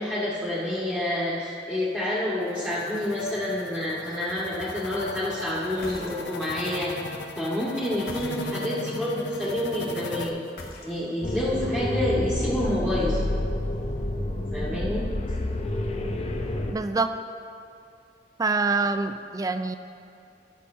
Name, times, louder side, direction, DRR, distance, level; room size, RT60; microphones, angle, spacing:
voice 1, 0.0-6.9 7.4-10.4 10.8-13.2 14.5-15.0, left 1 dB, 5° left, -10 dB, 1.9 m, -28 dB
sound 1, 2.4-10.3, left 3 dB, 90° left, 0.6 m, -37 dB
sound 2, 5.7-6.5 7.9-8.8 10.4-11.3, left 1 dB, 55° left, 1.1 m, -43 dB
sound 3, 11.2-16.7, left 1 dB, 35° left, 0.7 m, -28 dB
voice 2, 16.7-17.1 18.4-19.8, right 3 dB, 20° right, 10 dB, 0.3 m, -25 dB
17.0 x 6.5 x 2.8 m, 2.5 s
head